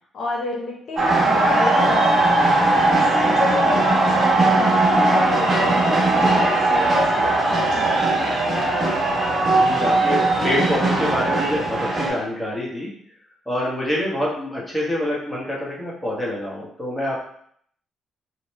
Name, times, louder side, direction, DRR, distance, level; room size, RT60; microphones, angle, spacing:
voice 1, 0.1-2.4 2.9-8.5, left 2 dB, 65° left, -2 dB, 0.7 m, -29 dB
sound 1, 1.0-12.1, right 2 dB, 35° right, 0.9 m, -19 dB
voice 2, 9.4-12.9 13.5-17.2, left 1 dB, 10° left, -5 dB, 1.0 m, -26 dB
3.0 x 2.0 x 3.0 m, 0.64 s
cardioid pair, 90°, 0 cm